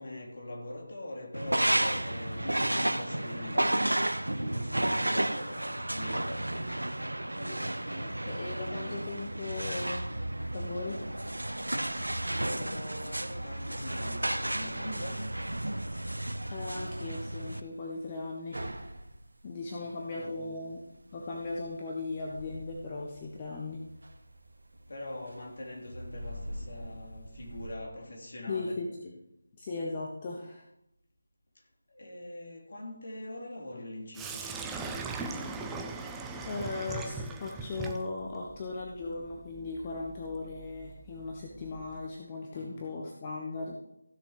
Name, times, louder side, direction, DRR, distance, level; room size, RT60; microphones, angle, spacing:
voice 1, 0.0-6.9 12.3-15.5 19.7-20.8 24.9-28.8 31.5-35.1 42.5-43.0, left 1 dB, 50° left, 3.4 m, -43 dB
sound 1, 1.3-17.6, right 1 dB, 75° right, 0.9 m, -32 dB
voice 2, 7.4-10.1 10.5-11.0 16.5-18.8 19.4-20.8 21.1-23.8 28.5-29.2 29.6-30.6 36.4-43.7, left 3 dB, 20° left, 1.2 m, -38 dB
sound 2, 10.3-27.8, equal, 55° right, 1.6 m, -48 dB
Sink (filling or washing), 34.1-42.1, right 4 dB, 5° right, 0.5 m, -40 dB
15.5 x 6.7 x 5.0 m
figure-of-eight pair, 160°, 0 cm